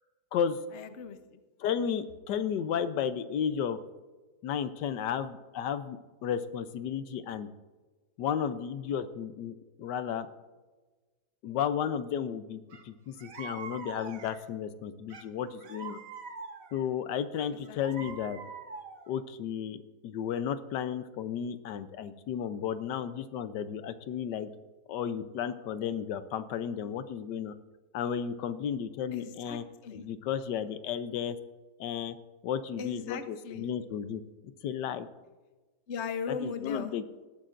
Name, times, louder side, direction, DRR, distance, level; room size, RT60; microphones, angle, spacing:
voice 1, 0.7-1.4 17.7-18.1 29.1-30.0 32.8-33.7 35.9-36.9, left 6 dB, 50° left, 8 dB, 1.0 m, -38 dB
voice 2, 1.6-3.8 4.4-7.5 8.2-10.3 11.4-16.0 16.7-18.4 19.1-24.5 24.9-27.5 27.9-29.6 29.9-31.4 31.8-32.1 32.4-34.2 34.6-35.1 36.3-37.0, left 8 dB, 85° left, 11 dB, 1.3 m, -33 dB
sound 1, 12.7-12.8 13.2-14.5 15.1-16.9 17.4-19.1, right 4 dB, 55° right, 1.5 m, -44 dB
18.5 x 13.0 x 2.5 m, 1.2 s
omnidirectional pair, 1.8 m